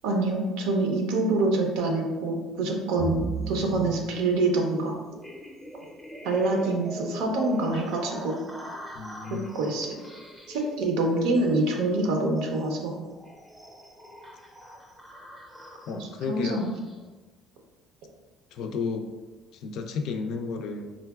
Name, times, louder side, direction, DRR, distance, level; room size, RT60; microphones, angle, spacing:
voice 1, 0.0-5.0 6.2-8.4 9.3-9.9 10.5-12.9 15.9-16.7, right 2 dB, 90° right, 1 dB, 0.6 m, -26 dB
sound 1, 3.0-17.1, right 1 dB, ahead, 0.6 m, -40 dB
voice 2, 8.9-9.5 15.9-16.7 18.5-19.1 19.5-20.9, left 5 dB, 70° left, 5 dB, 0.3 m, -32 dB
3.8 x 2.1 x 2.2 m, 1.2 s
cardioid pair, 115°, 0 cm